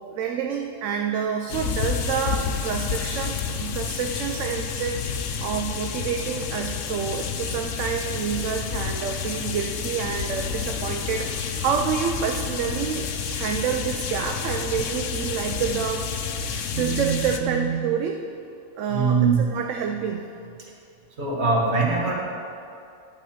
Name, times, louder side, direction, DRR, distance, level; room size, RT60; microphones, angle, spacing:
voice 1, 0.1-16.1 16.4-18.2 18.8-20.3, right 7 dB, 80° right, 3 dB, 1.0 m, -28 dB
sound 1, 1.5-17.4, left 6 dB, 75° left, 1.0 m, -30 dB
voice 2, 16.7-17.1 17.4-17.7 18.9-19.4 21.2-22.1, right 4 dB, 60° right, -3 dB, 2.0 m, -22 dB
11.0 x 4.9 x 7.4 m, 2.6 s
omnidirectional pair, 1.3 m